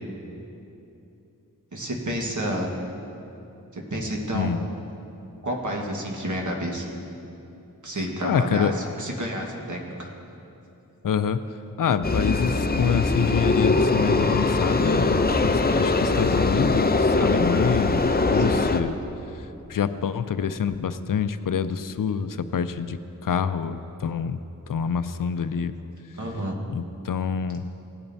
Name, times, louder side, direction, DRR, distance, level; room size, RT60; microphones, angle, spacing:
voice 1, 1.7-2.7 3.7-4.5 5.4-6.8 7.8-10.1 18.3-18.6 26.1-26.5, right 1 dB, 60° right, -1 dB, 1.6 m, -30 dB
voice 2, 8.2-8.7 11.0-11.5 11.8-19.0 19.7-24.4 24.7-25.7 26.7-27.6, left 7 dB, 70° left, 11 dB, 0.5 m, -26 dB
sound 1, 12.0-18.8, left 3 dB, 30° left, 0.5 m, -22 dB
17.0 x 8.8 x 2.7 m, 2.8 s
wide cardioid pair, 50°, 34 cm